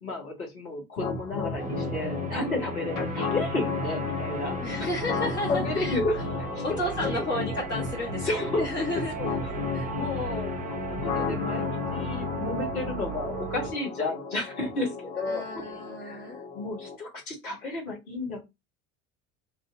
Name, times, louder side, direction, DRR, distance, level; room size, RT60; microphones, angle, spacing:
voice 1, 0.0-4.9 5.5-6.8 7.1-7.3 8.2-8.7 9.2-15.5 16.0-18.4, left 2 dB, 80° left, -1 dB, 1.2 m, -32 dB
sound 1, 1.0-17.0, left 5 dB, 60° left, 1.0 m, -33 dB
sound 2, 1.6-13.7, right 5 dB, 20° right, 0.7 m, -37 dB
voice 2, 4.6-6.0 6.6-9.1 9.7-9.9 15.1-16.4, left 1 dB, 25° left, -4 dB, 1.1 m, -32 dB
2.9 x 2.5 x 2.5 m, 0.22 s
figure-of-eight pair, 65°, 43 cm